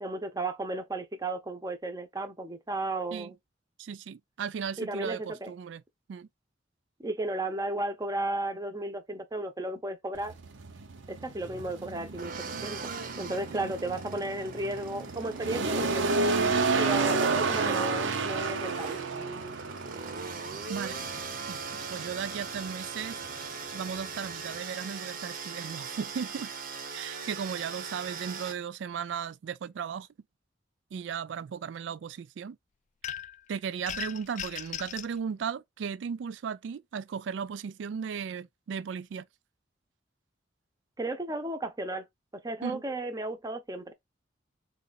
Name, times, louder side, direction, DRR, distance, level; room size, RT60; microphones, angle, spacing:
voice 1, 0.0-3.4 4.8-5.5 7.0-10.3 11.1-12.3 12.6-12.9 13.2-16.1 16.8-19.0 41.0-42.1 42.3-43.9, right 2 dB, 20° right, 0.7 m, -34 dB
voice 2, 3.8-5.8 6.1-6.3 13.5-13.7 20.7-21.0 21.5-21.6 21.9-23.2 23.7-26.5 26.9-30.1 30.9-32.6 33.5-39.3 42.6-42.8, right 7 dB, 70° right, 0.3 m, -36 dB
sound 1, 10.2-24.6, right 4 dB, 85° right, 0.8 m, -32 dB
sound 2, 12.2-28.5, right 5 dB, 50° right, 0.8 m, -40 dB
sound 3, 33.0-33.4 33.9-35.1, left 9 dB, 40° left, 0.3 m, -38 dB
4.0 x 2.5 x 4.0 m
head